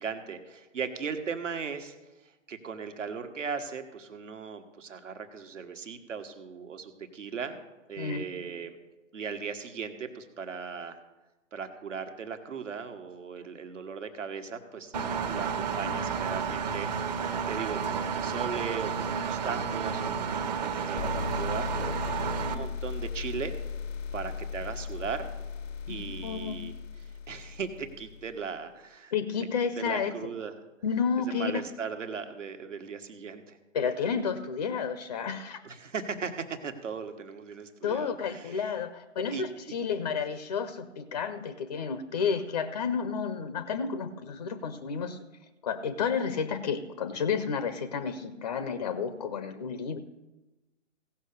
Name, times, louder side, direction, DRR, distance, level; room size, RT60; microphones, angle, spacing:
voice 1, 0.0-1.9 2.5-7.6 7.9-8.8 9.1-11.0 11.5-14.9 15.3-23.5 24.1-25.3 25.9-26.7 27.3-29.1 29.8-30.5 31.3-33.6 35.6-38.7 39.3-39.4 42.3-42.4, right 6 dB, 75° right, 7 dB, 1.5 m, -38 dB
voice 2, 8.0-8.3 25.9-26.0 26.2-26.6 29.1-30.2 30.8-31.6 33.7-35.6 37.8-45.2 45.6-50.0, left 6 dB, 30° left, 12 dB, 0.5 m, -31 dB
Engine, 14.9-22.5, right 6 dB, 35° right, 0.9 m, -31 dB
sound 1, 21.0-28.5, left 6 dB, 75° left, 0.6 m, -37 dB
16.5 x 5.9 x 6.6 m, 1.1 s
hypercardioid pair, 145°, 38 cm